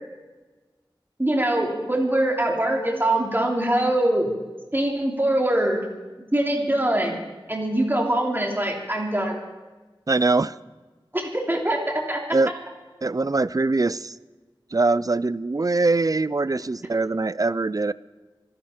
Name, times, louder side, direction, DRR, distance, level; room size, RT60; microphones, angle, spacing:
voice 1, 1.2-4.3 4.7-5.8 6.3-7.2 7.5-9.4 11.1-12.2, right 1 dB, 25° right, 0 dB, 3.1 m, -23 dB
voice 2, 10.1-10.5 12.3-12.5 13.0-14.1 14.7-17.9, right 3 dB, 45° right, 19 dB, 0.4 m, -22 dB
25.5 x 11.0 x 4.5 m, 1.2 s
wide cardioid pair, 45°, 9 cm